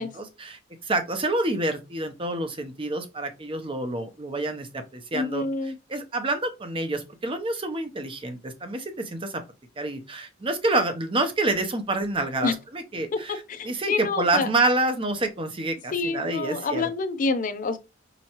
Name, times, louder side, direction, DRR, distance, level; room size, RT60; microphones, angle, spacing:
voice 1, 0.0-9.4 9.8-16.9, right 2 dB, 25° right, 0.7 m, -28 dB
voice 2, 5.1-5.7 12.4-12.5 13.1-13.2 13.5-14.5 15.9-17.8, left 4 dB, 40° left, 0.4 m, -27 dB
5.4 x 3.0 x 2.9 m
head